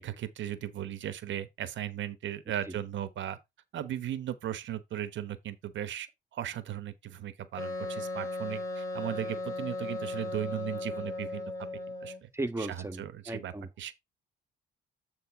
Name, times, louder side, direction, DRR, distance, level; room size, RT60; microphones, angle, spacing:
voice 1, 0.0-3.4 3.7-6.1 6.3-11.4 12.0-12.3 12.6-13.9, right 11 dB, 70° right, 1.1 m, -37 dB
Wind instrument woodwind instrument, 7.6-12.2, left 2 dB, 15° left, 3.9 m, -36 dB
voice 2, 12.3-13.0 13.3-13.7, right 2 dB, 15° right, 1.5 m, -35 dB
8.9 x 3.6 x 4.7 m
cardioid pair, 90°, 20 cm